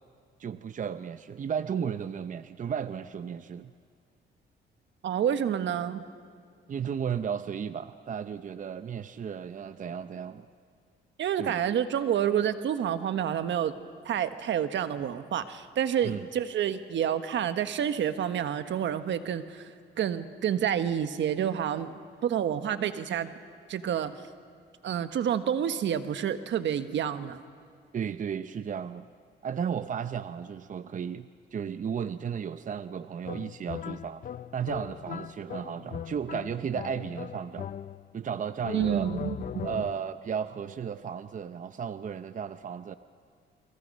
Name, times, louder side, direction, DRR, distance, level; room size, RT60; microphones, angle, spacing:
voice 1, 0.4-3.7 6.7-10.5 11.4-11.6 16.0-16.3 27.9-29.1 29.4-34.2 34.5-37.7 38.1-39.1 39.6-43.0, right 7 dB, 40° right, 11 dB, 0.7 m, -34 dB
voice 2, 5.0-6.0 11.2-13.7 14.0-21.9 22.2-23.3 23.7-24.2 24.8-27.4 38.7-39.7, right 9 dB, 65° right, 10 dB, 1.3 m, -29 dB
sound 1, 33.2-38.2 38.6-40.2, left 9 dB, 45° left, 0.5 m, -39 dB
29.0 x 23.5 x 5.4 m, 2.2 s
cardioid pair, 90°, 20 cm